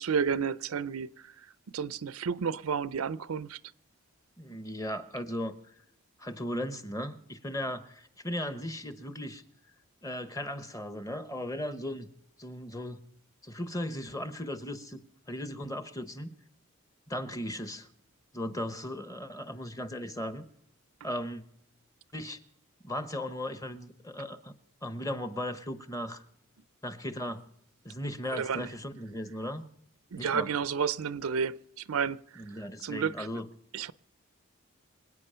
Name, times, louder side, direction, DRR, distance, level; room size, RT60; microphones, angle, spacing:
voice 1, 0.0-1.3 1.7-3.6 28.3-28.7 30.1-33.3 33.7-33.9, right 6 dB, 85° right, 0.5 m, -31 dB
voice 2, 4.4-5.6 6.2-9.4 10.0-12.1 12.4-13.0 13.4-16.3 17.1-17.9 18.3-20.4 21.0-21.4 22.1-22.4 22.8-24.5 24.8-26.2 26.8-27.4 27.8-29.6 30.2-30.5 32.4-33.5, left 1 dB, 15° left, 0.9 m, -37 dB
26.0 x 9.0 x 5.6 m
head